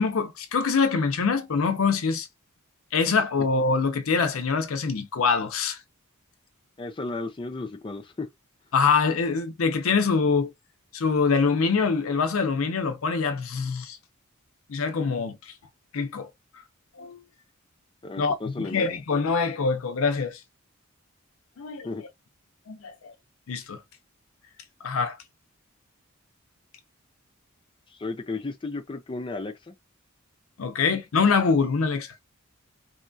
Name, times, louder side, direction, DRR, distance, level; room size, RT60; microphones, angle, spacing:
voice 1, 0.0-2.3 2.9-5.8 8.7-10.5 10.9-14.0 14.7-15.4 15.9-16.3 17.0-17.2 18.2-20.4 21.6-21.9 22.7-23.1 23.5-23.8 24.8-25.2 30.6-32.1, left 5 dB, 70° left, 0.5 m, -24 dB
voice 2, 6.8-8.3 18.0-19.0 21.8-22.0 27.9-29.7, left 3 dB, 25° left, 0.5 m, -34 dB
2.8 x 2.2 x 2.6 m
head